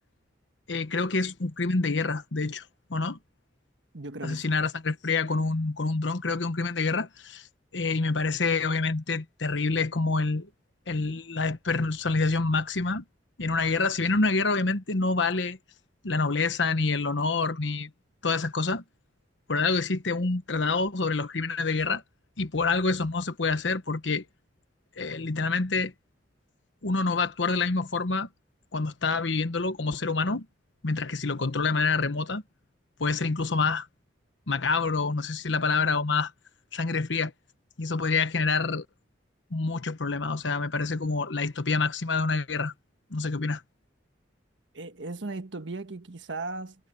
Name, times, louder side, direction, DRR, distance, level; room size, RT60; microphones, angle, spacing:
voice 1, 0.7-2.6 2.9-3.2 4.2-7.5 7.7-10.5 10.9-13.0 13.4-15.6 16.0-17.9 18.2-18.8 19.5-22.0 22.4-24.2 25.0-25.9 26.8-28.3 28.7-30.5 30.8-32.4 33.0-33.9 34.5-36.3 36.7-37.3 37.8-38.8 39.5-42.7 43.1-43.6, left 3 dB, 70° left, 1.2 m, -27 dB
voice 2, 3.9-4.5 44.7-46.8, right 3 dB, 70° right, 1.4 m, -37 dB
head